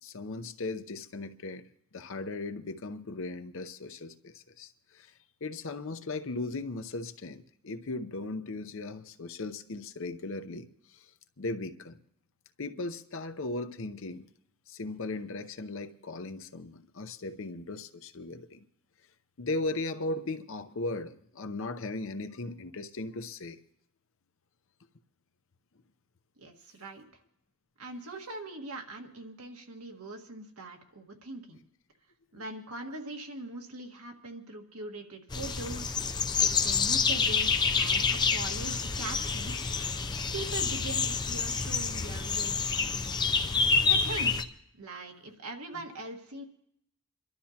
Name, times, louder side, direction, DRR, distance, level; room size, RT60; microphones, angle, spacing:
voice 1, 0.0-1.6 1.9-5.1 5.4-11.1 11.4-12.0 12.6-14.3 14.7-18.7 19.4-23.6 32.3-32.4 45.8-45.9, left 2 dB, 60° left, 0.7 m, -37 dB
voice 2, 26.4-27.1 27.8-31.6 32.3-36.0 36.3-39.7 40.3-43.2 43.8-44.3 44.7-46.4, right 2 dB, 80° right, 1.7 m, -42 dB
sound 1, 35.3-44.4, left 5 dB, 20° left, 0.5 m, -28 dB
27.5 x 12.0 x 2.9 m
head